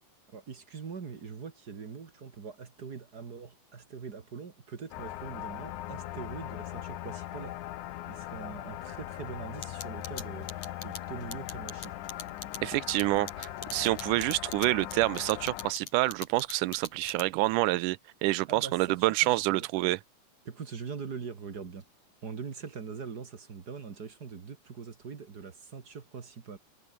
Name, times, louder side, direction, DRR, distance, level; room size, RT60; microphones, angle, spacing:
voice 1, 0.3-7.6 8.1-11.9 18.5-19.7 20.5-21.8 22.2-26.6, right 6 dB, 40° right, 1.8 m, -42 dB
sound 1, 4.9-15.7, left 14 dB, 80° left, 2.5 m, -40 dB
sound 2, 9.6-17.5, left 6 dB, 60° left, 4.8 m, -41 dB
voice 2, 12.6-20.0, right 20 dB, 90° right, 2.2 m, -27 dB
omnidirectional pair, 3.6 m